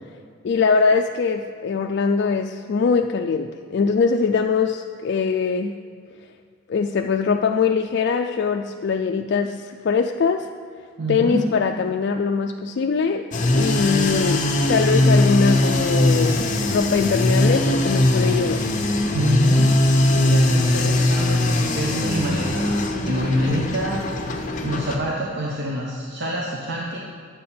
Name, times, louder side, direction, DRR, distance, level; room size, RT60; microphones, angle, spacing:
voice 1, 0.4-5.8 6.7-10.5 11.1-13.3 13.5-18.7, left 5 dB, 55° left, 4 dB, 0.3 m, -22 dB
voice 2, 11.0-11.4 19.1-19.7 20.1-24.3 24.6-27.0, equal, 60° right, -3 dB, 1.0 m, -26 dB
sound 1, 13.3-25.0, left 1 dB, 40° left, 0.8 m, -20 dB
10.0 x 7.4 x 4.3 m, 2.2 s
head